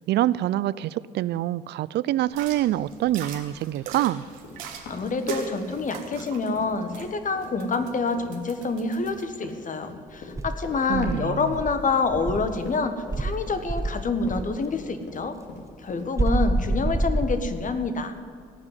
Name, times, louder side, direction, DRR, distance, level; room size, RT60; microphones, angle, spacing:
voice 1, 0.1-4.2 10.9-11.5, right 14 dB, 60° right, 19 dB, 0.4 m, -25 dB
sound 1, 2.3-9.2, right 6 dB, 75° right, 1.7 m, -40 dB
Run, 4.4-5.8 6.1-16.1, left 4 dB, 65° left, 2.8 m, -42 dB
voice 2, 4.9-15.4 15.8-18.2, left 4 dB, 40° left, 9 dB, 1.5 m, -27 dB
Insect, 10.3-12.6 13.1-14.5 16.2-17.8, right 1 dB, 15° right, 0.8 m, -27 dB
17.5 x 6.1 x 9.2 m, 2.1 s
hypercardioid pair, 50°, 20 cm